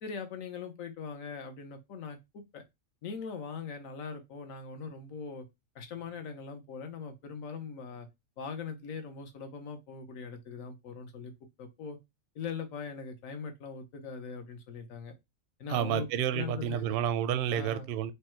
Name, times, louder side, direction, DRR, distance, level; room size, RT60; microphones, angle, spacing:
voice 1, 0.0-2.6 3.0-5.5 5.7-8.1 8.4-11.3 11.6-12.0 12.3-15.1 15.6-16.8 17.5-17.9, left 5 dB, 80° left, 1.3 m, -41 dB
voice 2, 15.7-18.1, right 9 dB, 60° right, 0.6 m, -30 dB
5.1 x 2.2 x 4.4 m
omnidirectional pair, 1.4 m